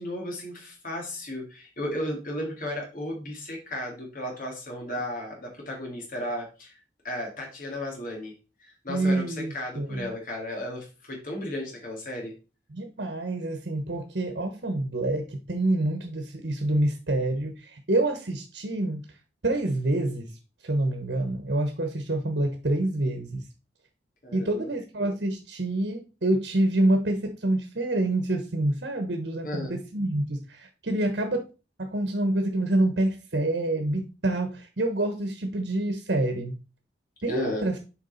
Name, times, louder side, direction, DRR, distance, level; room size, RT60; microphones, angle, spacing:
voice 1, 0.0-6.7 7.0-8.3 8.6-12.3 24.2-24.7 29.4-29.8 37.3-37.7, left 1 dB, 50° left, -1 dB, 2.2 m, -34 dB
voice 2, 8.9-10.1 12.7-19.0 19.4-20.3 20.6-23.4 24.3-31.4 31.8-36.6 37.2-37.8, right 1 dB, 65° right, 6 dB, 1.1 m, -27 dB
7.2 x 4.5 x 4.0 m, 0.31 s
head